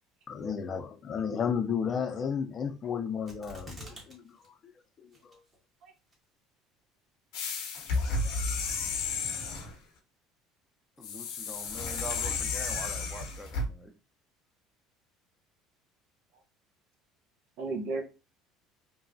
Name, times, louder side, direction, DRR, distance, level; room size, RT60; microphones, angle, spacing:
voice 1, 0.3-4.4 4.6-4.7 5.0-5.4, left 7 dB, 40° left, 0.5 m, -33 dB
sound 1, 3.3-4.1 4.4-4.5 5.1-5.6 6.1-6.2, equal, 30° right, 1.2 m, -46 dB
sound 2, 7.3-9.7 11.0-13.7, left 3 dB, 70° left, 0.8 m, -32 dB
voice 2, 8.0-8.4 17.6-18.0, right 3 dB, 65° right, 0.7 m, -36 dB
voice 3, 11.0-13.9, equal, ahead, 0.6 m, -44 dB
2.9 x 2.3 x 2.6 m
supercardioid pair, 80°, 0 cm